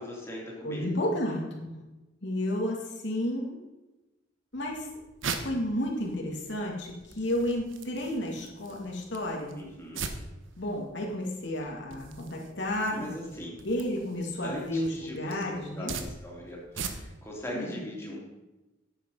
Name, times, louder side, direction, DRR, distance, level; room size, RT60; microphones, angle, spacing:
voice 1, 0.0-0.9 9.5-10.0 12.9-13.6 14.4-18.3, left 1 dB, 15° left, -3 dB, 2.8 m, -40 dB
voice 2, 0.6-1.8 2.2-3.6 4.5-4.9 5.4-9.6 10.6-13.1 13.6-15.9 17.5-17.8, left 1 dB, 65° left, -1 dB, 2.2 m, -32 dB
sound 1, 4.5-17.3, right 5 dB, 85° right, 1.2 m, -42 dB
10.5 x 8.5 x 5.5 m, 1.0 s
head